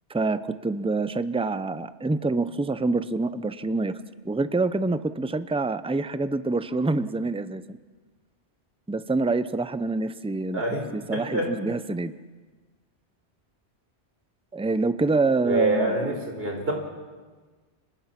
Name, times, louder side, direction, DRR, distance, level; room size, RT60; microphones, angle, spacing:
voice 1, 0.1-3.9 4.2-7.8 8.9-10.6 10.9-12.1 14.5-16.1, right 3 dB, 5° right, 13 dB, 0.5 m, -26 dB
voice 2, 10.5-10.9 11.1-11.5 15.4-16.7, right 1 dB, 55° right, 2 dB, 4.8 m, -26 dB
30.0 x 25.5 x 6.0 m, 1.4 s
omnidirectional pair, 1.2 m